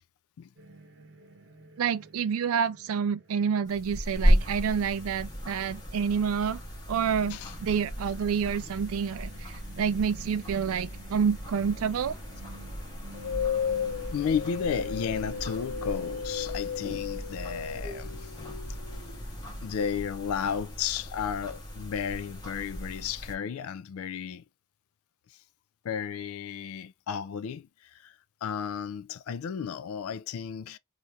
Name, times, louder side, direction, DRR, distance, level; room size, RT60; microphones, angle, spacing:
sound 1, 0.6-17.6, right 2 dB, 60° right, 0.7 m, -51 dB
voice 1, 1.8-6.6 6.9-12.2, right 7 dB, 80° right, 0.4 m, -28 dB
sound 2, 3.7-23.3, equal, 20° left, 1.0 m, -34 dB
sound 3, 13.1-19.7, left 7 dB, 55° left, 1.0 m, -35 dB
voice 2, 14.1-18.3 19.6-24.4 25.3-25.4 25.8-28.1 28.4-30.8, left 7 dB, 80° left, 0.3 m, -33 dB
2.8 x 2.4 x 3.1 m
head